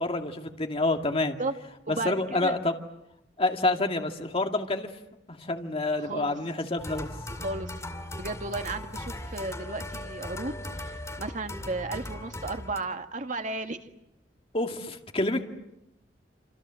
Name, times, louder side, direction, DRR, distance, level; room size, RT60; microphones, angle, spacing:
voice 1, 0.0-1.4 1.9-2.7 3.4-4.9 5.3-7.1 14.5-15.4, left 2 dB, 35° left, 4 dB, 2.3 m, -28 dB
voice 2, 1.9-2.6 6.0-6.4 7.4-7.7 8.2-13.8, right 2 dB, 45° right, 6 dB, 1.9 m, -34 dB
sound 1, 6.8-12.8, left 1 dB, 15° left, 2.3 m, -38 dB
28.5 x 27.0 x 7.7 m, 0.87 s
head